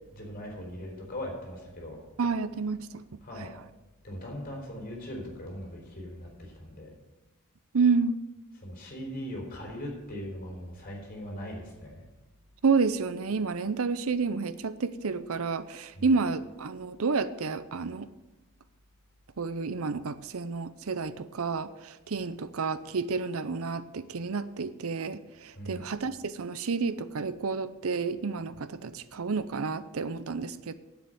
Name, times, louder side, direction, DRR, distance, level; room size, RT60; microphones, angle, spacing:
voice 1, 0.1-2.0 2.3-2.4 3.2-3.5 4.0-6.9 8.5-12.0 15.9-16.2 25.6-25.9, equal, 40° left, -1 dB, 4.2 m, -40 dB
voice 2, 2.2-3.0 3.4-3.5 7.7-8.2 12.6-18.1 19.4-30.7, right 4 dB, 75° right, 14 dB, 0.6 m, -30 dB
9.7 x 7.9 x 9.1 m, 1.0 s
head